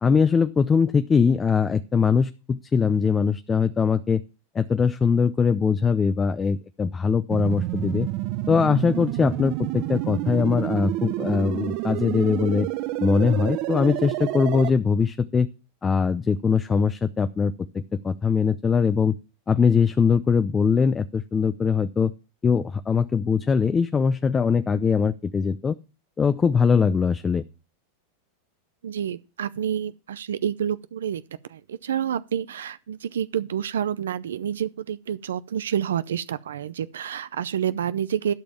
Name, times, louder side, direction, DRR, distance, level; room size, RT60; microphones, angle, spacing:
voice 1, 0.0-4.2 4.5-8.1 8.5-12.7 13.0-15.5 15.8-19.1 19.5-22.1 22.4-25.8 26.2-27.4, left 5 dB, 20° left, 0.6 m, -21 dB
sound 1, 7.3-14.7, right 17 dB, 55° right, 0.7 m, -29 dB
voice 2, 28.8-31.2 31.5-38.3, right 9 dB, 90° right, 0.6 m, -28 dB
12.0 x 5.3 x 7.0 m
hypercardioid pair, 120°, 0 cm